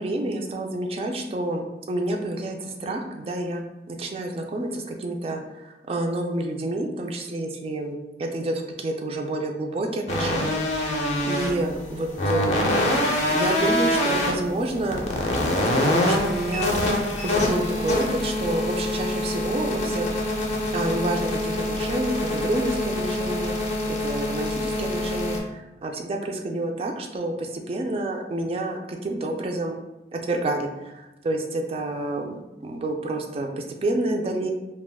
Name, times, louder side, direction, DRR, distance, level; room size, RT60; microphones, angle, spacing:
voice 1, 0.0-10.9 11.2-12.7 13.0-15.0 15.6-16.8 17.2-20.1 20.7-23.5 23.9-29.8 30.1-34.5, right 2 dB, 35° right, 3 dB, 0.3 m, -29 dB
sound 1, 10.1-25.4, left 1 dB, 40° left, 0.5 m, -25 dB
2.4 x 2.2 x 3.4 m, 1.0 s
head